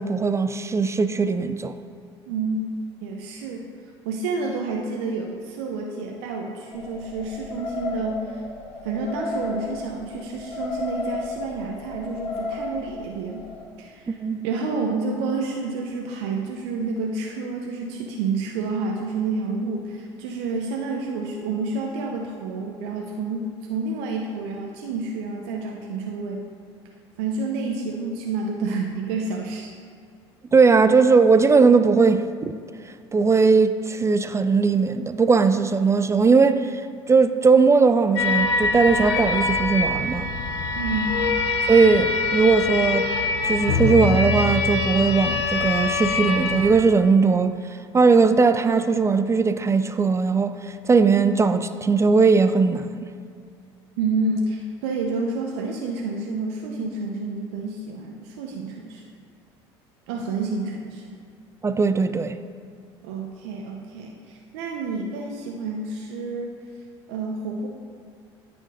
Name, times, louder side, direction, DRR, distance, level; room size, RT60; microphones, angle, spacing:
voice 1, 0.0-1.7 14.1-14.4 30.5-32.5 33.1-36.8 37.1-40.3 41.7-43.1 43.5-47.5 47.9-50.5 50.9-53.1 61.6-62.4, right 4 dB, 20° right, 0.4 m, -19 dB
voice 2, 2.3-2.6 3.0-3.7 4.0-8.4 8.8-13.5 13.8-14.2 14.4-26.5 27.2-29.7 40.7-41.2 54.0-59.0 60.1-61.1 63.0-66.6 67.1-67.7, right 3 dB, 75° right, 0.7 m, -29 dB
sound 1, 6.7-13.6, left 3 dB, 50° left, 1.5 m, -33 dB
sound 2, 38.2-46.7, left 3 dB, 90° left, 0.7 m, -24 dB
9.2 x 4.3 x 5.1 m
hypercardioid pair, 70°, 14 cm